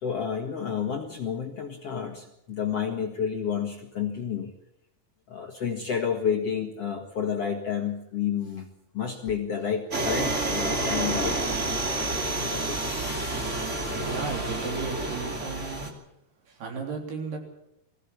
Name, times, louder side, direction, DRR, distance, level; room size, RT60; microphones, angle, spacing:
voice 1, 0.0-4.5 5.3-8.7 8.9-11.4 12.4-12.8, left 7 dB, 50° left, 2 dB, 2.0 m, -30 dB
sound 1, 9.9-15.9, right 2 dB, 20° right, 2.3 m, -29 dB
voice 2, 14.1-15.9 16.5-17.4, right 5 dB, 70° right, 2 dB, 5.5 m, -34 dB
21.0 x 16.5 x 8.5 m, 0.81 s
omnidirectional pair, 4.7 m